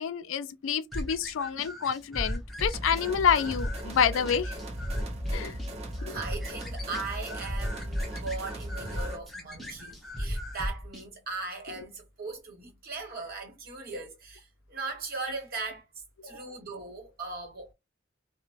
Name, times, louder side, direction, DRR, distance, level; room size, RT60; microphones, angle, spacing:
voice 1, 0.0-4.6 5.3-5.6 6.0-6.2, left 7 dB, 85° left, 0.4 m, -28 dB
sound 1, 0.9-11.1, equal, ahead, 0.8 m, -36 dB
sound 2, 2.7-9.3, equal, 35° right, 0.7 m, -37 dB
voice 2, 6.0-17.7, right 3 dB, 50° right, 1.2 m, -39 dB
2.9 x 2.1 x 2.5 m
head